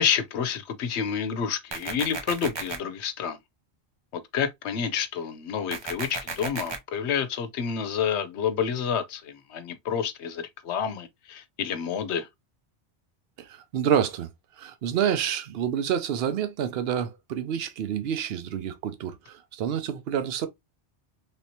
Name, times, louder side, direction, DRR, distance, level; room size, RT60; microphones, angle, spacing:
voice 1, 0.0-3.4 4.3-12.3, left 7 dB, 80° left, 0.9 m, -29 dB
sound 1, 1.7-2.8 5.7-6.8, right 4 dB, 35° right, 0.5 m, -33 dB
voice 2, 13.4-14.3 14.6-20.5, right 9 dB, 65° right, 0.8 m, -28 dB
3.4 x 3.0 x 2.7 m
omnidirectional pair, 1.2 m